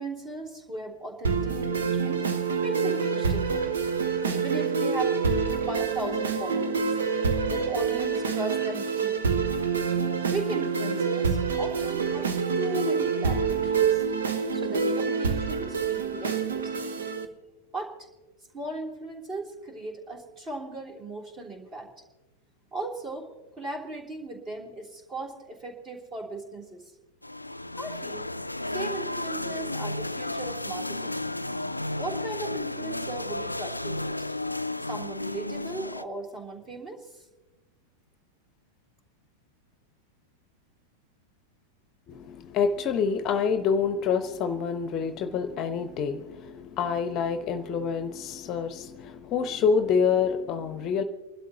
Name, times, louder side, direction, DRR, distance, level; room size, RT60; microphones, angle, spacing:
voice 1, 0.0-2.3 2.6-9.5 10.3-14.0 14.5-17.0 17.7-18.1 18.5-21.9 22.7-23.3 23.5-26.9 27.8-28.3 28.7-31.2 32.0-34.2 34.8-37.2, right 2 dB, 25° right, 1 dB, 3.2 m, -37 dB
sound 1, 1.2-17.2, right 5 dB, 65° right, 1.1 m, -27 dB
sound 2, 27.2-36.0, left 2 dB, 85° left, 0.4 m, -33 dB
voice 2, 42.1-51.0, left 6 dB, 35° left, 10 dB, 0.8 m, -27 dB
29.5 x 12.5 x 2.8 m, 1.1 s
figure-of-eight pair, 90°, 0 cm